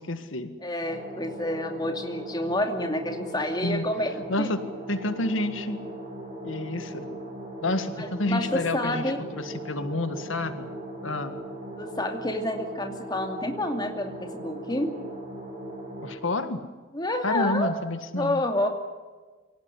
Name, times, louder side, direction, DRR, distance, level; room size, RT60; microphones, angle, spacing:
voice 1, 0.0-0.6 3.6-3.8 4.2-5.8 6.4-7.2 7.6-10.7 11.0-11.4 16.0-16.6 17.2-18.4, left 2 dB, 90° left, 10 dB, 1.8 m, -29 dB
voice 2, 0.6-4.5 8.0-9.2 11.8-14.9 16.9-17.7 18.1-18.7, left 1 dB, 20° left, 4 dB, 2.6 m, -29 dB
sound 1, 0.8-16.2, right 1 dB, 30° right, 7.1 m, -39 dB
25.0 x 17.5 x 9.8 m, 1.4 s
head